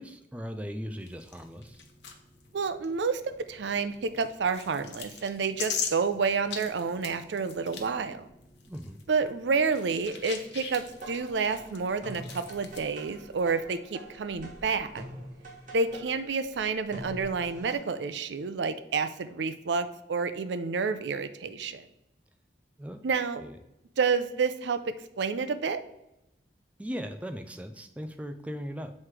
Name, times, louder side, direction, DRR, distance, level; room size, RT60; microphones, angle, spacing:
voice 1, 0.0-1.8 8.7-9.0 22.8-23.0 23.4-23.6 26.8-28.9, equal, 5° right, 6 dB, 0.4 m, -38 dB
sound 1, 1.0-13.6, left 6 dB, 75° left, 0.9 m, -42 dB
voice 2, 2.5-8.3 9.1-15.0 15.7-21.8 23.0-23.4 24.0-25.8, right 5 dB, 75° right, 11 dB, 0.5 m, -29 dB
sound 2, 10.8-17.7, right 1 dB, 45° right, 1.4 m, -45 dB
7.6 x 3.2 x 4.7 m, 0.88 s
head